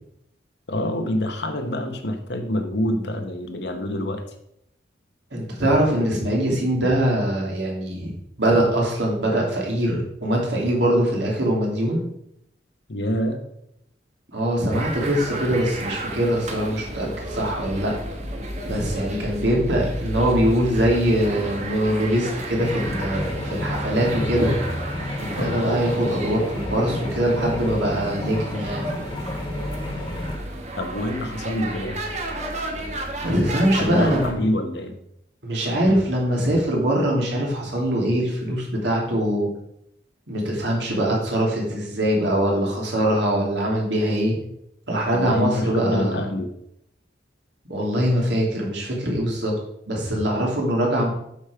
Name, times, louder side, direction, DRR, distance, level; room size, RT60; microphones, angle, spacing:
voice 1, 0.7-4.2 12.9-13.4 25.4-25.8 30.8-32.2 33.7-35.0 45.1-46.5, left 1 dB, 60° left, 5 dB, 1.2 m, -26 dB
voice 2, 5.3-8.1 8.4-12.1 14.3-18.0 18.7-24.5 25.2-28.9 33.2-34.4 35.4-39.5 40.3-44.4 44.9-46.3 47.6-49.5 49.9-51.1, right 1 dB, 65° right, -2 dB, 2.8 m, -22 dB
sound 1, 14.7-34.3, right 1 dB, 35° right, 1.4 m, -32 dB
sound 2, 22.6-30.4, left 1 dB, 25° left, 1.7 m, -32 dB
8.6 x 6.3 x 4.9 m, 0.77 s
head